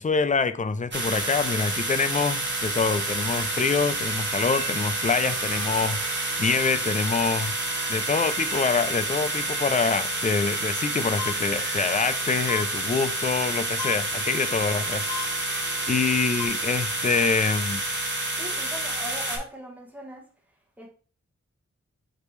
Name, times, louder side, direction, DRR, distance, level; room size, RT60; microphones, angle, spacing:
voice 1, 0.0-7.6 7.9-15.0 15.9-17.8, left 5 dB, 25° left, 0.3 m, -25 dB
sound 1, 0.9-19.4, right 2 dB, 40° right, 1.2 m, -29 dB
sound 2, 2.7-12.9 13.5-17.3, right 8 dB, 85° right, 0.4 m, -42 dB
sound 3, 11.2-11.3 12.5-12.6 13.8-13.9 15.1-15.2 16.4-16.5, left 8 dB, 85° left, 0.5 m, -32 dB
voice 2, 18.4-20.3 20.8-20.9, equal, 5° right, 1.2 m, -39 dB
5.0 x 3.2 x 3.1 m
wide cardioid pair, 90°, 29 cm